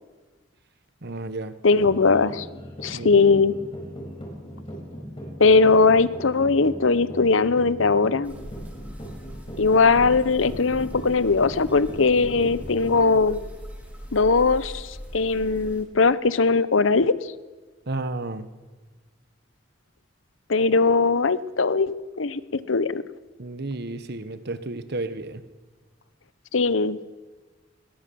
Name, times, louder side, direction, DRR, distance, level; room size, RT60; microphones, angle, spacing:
voice 1, 1.0-1.5 2.9-3.2 17.9-18.5 23.4-25.4, right 2 dB, 60° right, 12 dB, 1.2 m, -32 dB
voice 2, 1.6-2.5 2.8-3.5 5.4-8.3 9.6-13.4 14.1-17.1 20.5-23.0 26.5-27.0, left 4 dB, 80° left, 16 dB, 0.9 m, -20 dB
sound 1, 1.8-13.2, equal, 30° left, 5.1 m, -39 dB
sound 2, 8.2-15.8, equal, 10° right, 5.3 m, -40 dB
21.0 x 19.5 x 7.1 m, 1.3 s
head